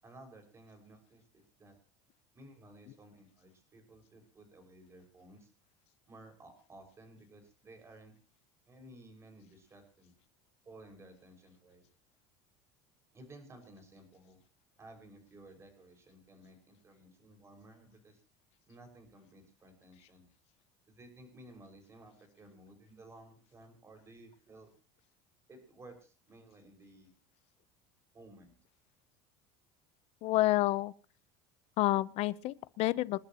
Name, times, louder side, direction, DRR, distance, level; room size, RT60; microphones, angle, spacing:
voice 1, 0.0-1.2 1.6-1.7 2.3-5.5 6.1-8.1 8.7-10.1 10.6-11.8 13.1-14.4 14.8-18.2 18.7-20.3 20.9-24.7 25.5-27.1 28.1-28.5, right 1 dB, 20° right, 5.8 m, -55 dB
voice 2, 30.2-30.9 31.8-33.2, left 17 dB, 50° left, 0.8 m, -29 dB
28.0 x 11.0 x 3.0 m
cardioid pair, 145°, 13 cm